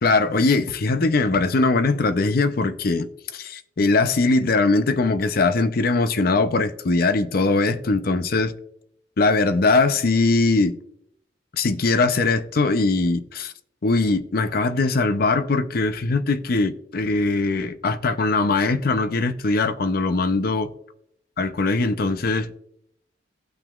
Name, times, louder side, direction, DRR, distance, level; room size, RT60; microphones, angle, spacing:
voice 1, 0.0-8.5 9.2-10.8 11.5-13.5 13.8-20.7 21.4-22.6, left 3 dB, 55° left, 0.5 m, -21 dB
17.0 x 5.9 x 2.4 m
head